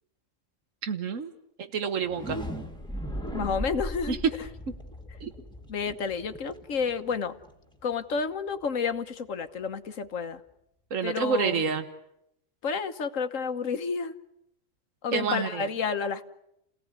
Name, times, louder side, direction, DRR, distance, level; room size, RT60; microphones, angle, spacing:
voice 1, 0.8-1.3 1.7-2.4 4.1-4.2 5.2-5.3 10.9-11.8 15.1-15.7, right 6 dB, 85° right, 9 dB, 1.6 m, -28 dB
sound 1, 2.0-7.8, equal, 5° left, 2.1 m, -38 dB
voice 2, 3.3-4.2 5.7-7.4 7.8-10.4 11.0-11.6 12.6-14.1 15.0-16.2, left 5 dB, 85° left, 10 dB, 1.5 m, -30 dB
30.0 x 17.5 x 9.5 m, 0.82 s
omnidirectional pair, 1.3 m